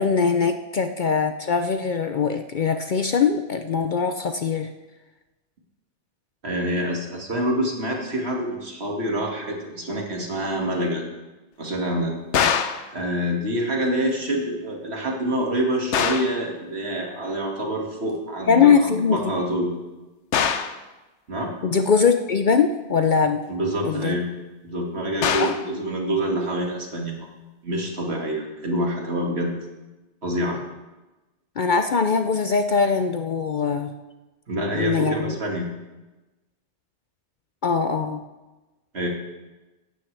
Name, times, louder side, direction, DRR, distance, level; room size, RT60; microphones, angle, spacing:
voice 1, 0.0-4.7 18.5-19.3 21.6-23.4 23.8-24.2 25.4-25.5 31.6-33.9 34.7-35.3 37.6-38.2, left 5 dB, 55° left, 7 dB, 0.6 m, -21 dB
voice 2, 6.4-11.1 11.6-12.2 12.9-19.7 21.3-21.5 23.5-24.3 24.6-27.3 27.6-29.6 30.2-30.6 34.5-35.7 38.9-39.1, right 1 dB, 65° right, 0 dB, 2.3 m, -26 dB
sound 1, 12.3-12.9 15.9-16.4 20.3-20.8 25.2-25.7, left 7 dB, 75° left, 1.0 m, -23 dB
16.5 x 12.0 x 3.4 m, 1.1 s
omnidirectional pair, 1.2 m